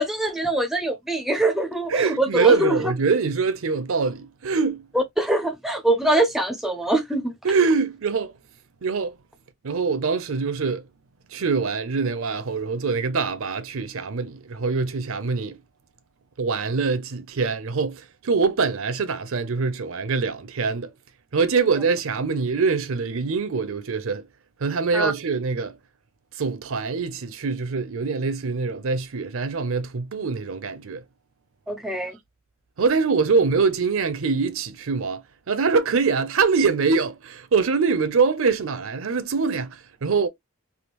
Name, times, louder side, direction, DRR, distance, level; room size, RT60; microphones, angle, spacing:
voice 1, 0.0-2.8 4.9-7.3 24.9-25.1 31.7-32.2, right 1 dB, ahead, 0.4 m, -23 dB
voice 2, 1.9-4.8 7.4-8.4 8.8-9.1 9.6-10.8 11.3-15.6 16.4-20.9 21.3-24.2 24.6-25.8 26.4-31.0 32.8-35.2 35.5-40.3, right 4 dB, 65° right, 0.5 m, -24 dB
3.5 x 2.3 x 2.9 m
head